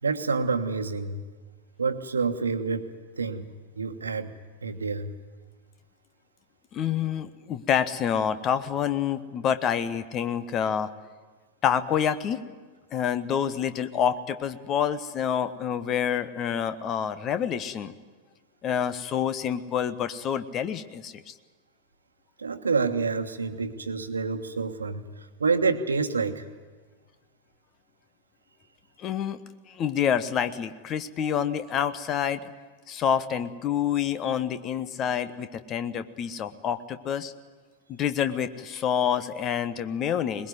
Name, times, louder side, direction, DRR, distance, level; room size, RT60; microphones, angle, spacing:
voice 1, 0.0-1.2 1.8-2.9 3.2-3.5 3.7-4.3 4.6-5.1 22.4-26.5, right 4 dB, 75° right, 8 dB, 1.4 m, -28 dB
voice 2, 6.7-10.9 11.6-12.4 12.9-17.9 18.6-21.3 29.0-29.4 29.7-32.5 32.9-37.3 37.9-40.5, left 8 dB, 30° left, 12 dB, 1.2 m, -27 dB
21.5 x 21.0 x 9.4 m, 1.4 s
figure-of-eight pair, 90°, 0 cm